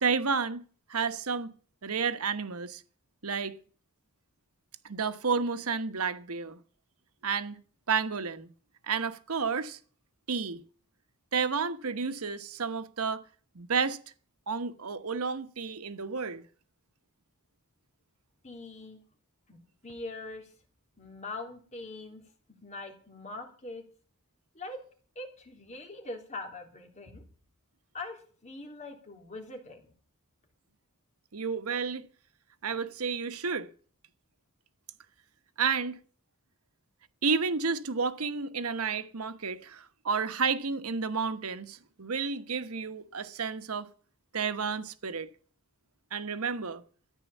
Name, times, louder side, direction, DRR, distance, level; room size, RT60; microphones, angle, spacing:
voice 1, 0.0-0.6 0.9-1.5 1.8-2.8 3.2-3.5 4.8-6.6 7.2-7.6 7.9-8.5 8.8-9.8 10.3-10.6 11.3-13.2 13.5-14.0 14.5-16.4 31.3-32.1 32.6-33.7 35.6-36.0 37.2-43.9 44.3-45.3 46.1-46.8, right 5 dB, 90° right, 1.1 m, -31 dB
voice 2, 18.4-19.0 19.5-20.5 21.0-22.2 22.6-23.8 24.5-24.8 25.2-27.2 27.9-29.9, left 2 dB, 35° left, 3.5 m, -42 dB
14.0 x 10.0 x 7.3 m
head